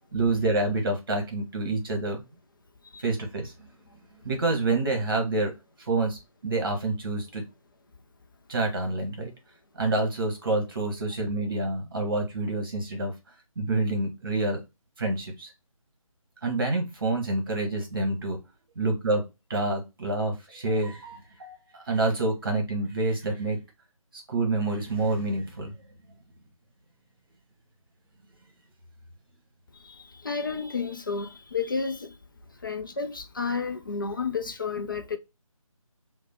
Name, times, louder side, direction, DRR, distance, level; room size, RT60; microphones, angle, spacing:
voice 1, 0.1-2.2 3.0-3.7 4.2-5.5 5.8-7.4 8.5-9.3 9.8-13.1 13.6-14.6 15.0-15.5 16.4-18.4 18.8-19.2 19.5-23.6 24.3-25.7, right 2 dB, 40° right, 1.1 m, -27 dB
voice 2, 29.7-32.2 32.6-35.2, left 5 dB, 35° left, 0.4 m, -31 dB
2.9 x 2.1 x 3.9 m
figure-of-eight pair, 155°, 18 cm